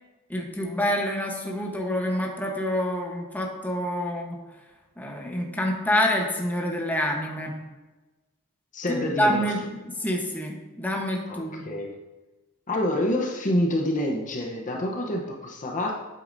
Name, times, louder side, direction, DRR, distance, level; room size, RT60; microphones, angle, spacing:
voice 1, 0.3-4.4 5.0-7.5 8.9-9.6 10.0-11.6, equal, 10° left, 0 dB, 1.0 m, -27 dB
voice 2, 8.7-9.5 11.3-12.0 12.7-15.9, left 1 dB, 35° left, 0 dB, 0.8 m, -27 dB
8.5 x 8.2 x 2.6 m, 1.2 s
head